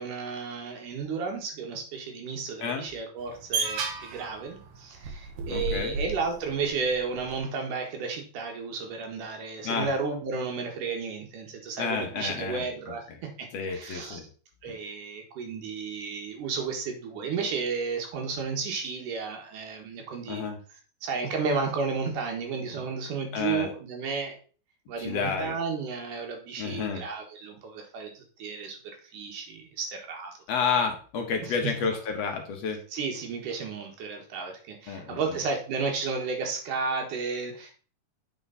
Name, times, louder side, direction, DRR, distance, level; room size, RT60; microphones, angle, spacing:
voice 1, 0.0-13.0 13.4-14.2 14.6-20.4 21.0-24.4 24.9-28.8 29.1-30.3 31.4-31.7 32.9-37.7, right 4 dB, 90° right, 2 dB, 3.1 m, -33 dB
sound 1, 3.2-7.4, right 4 dB, 70° right, 2.5 m, -34 dB
voice 2, 5.5-6.0 9.6-9.9 11.8-12.6 13.5-14.2 14.7-14.8 20.3-20.6 23.3-23.7 25.0-25.5 26.6-27.0 30.5-32.8 34.9-35.4, left 6 dB, 65° left, 4 dB, 1.8 m, -30 dB
8.2 x 4.6 x 4.0 m, 0.39 s
omnidirectional pair, 3.6 m